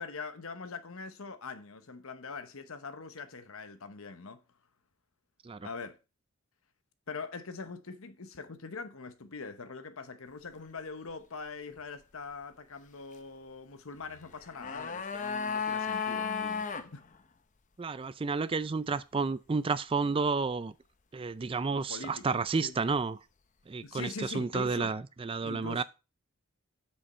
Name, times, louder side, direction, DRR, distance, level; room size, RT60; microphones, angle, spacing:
voice 1, 0.0-4.4 5.6-6.0 7.1-17.0 21.7-22.8 23.8-25.0 25.4-25.8, left 4 dB, 70° left, 1.0 m, -43 dB
sound 1, 14.3-16.9 17.1-17.2, left 6 dB, 35° left, 0.6 m, -34 dB
voice 2, 17.8-20.7 21.1-23.2 23.7-25.8, right 4 dB, 25° right, 0.4 m, -31 dB
7.8 x 7.0 x 4.2 m
head